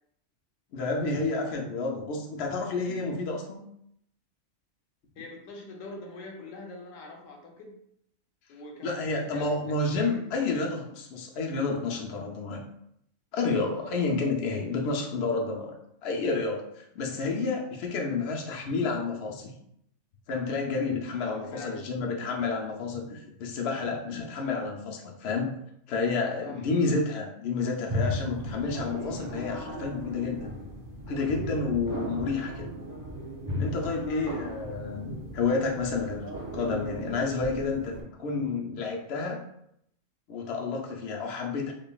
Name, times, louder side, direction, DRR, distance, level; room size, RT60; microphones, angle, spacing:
voice 1, 0.7-3.6 8.8-12.6 13.3-15.7 16.0-19.5 20.3-25.5 25.9-30.5 31.1-32.7 33.6-36.3 36.5-37.9 38.2-39.4 40.3-41.7, left 4 dB, 60° left, 0 dB, 0.8 m, -30 dB
voice 2, 5.2-7.7 8.5-10.5 13.8-14.1 21.1-21.9 26.4-27.0 34.1-34.4, left 2 dB, 85° left, 2 dB, 1.1 m, -44 dB
sound 1, 27.9-38.0, left 1 dB, 20° right, 0.6 m, -36 dB
5.2 x 2.3 x 2.3 m, 0.75 s
omnidirectional pair, 1.3 m